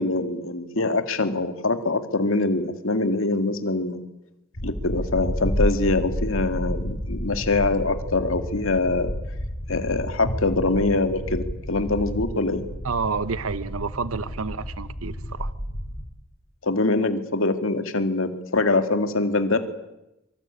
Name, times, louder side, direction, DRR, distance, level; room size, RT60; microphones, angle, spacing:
voice 1, 0.0-4.0 4.6-9.1 9.7-12.7 16.6-19.6, left 2 dB, 75° left, 7 dB, 2.1 m, -24 dB
sound 1, 4.5-16.1, equal, 55° left, 6.0 m, -30 dB
voice 2, 12.8-15.5, right 4 dB, 85° right, 14 dB, 0.9 m, -29 dB
25.0 x 24.0 x 8.6 m, 0.92 s
head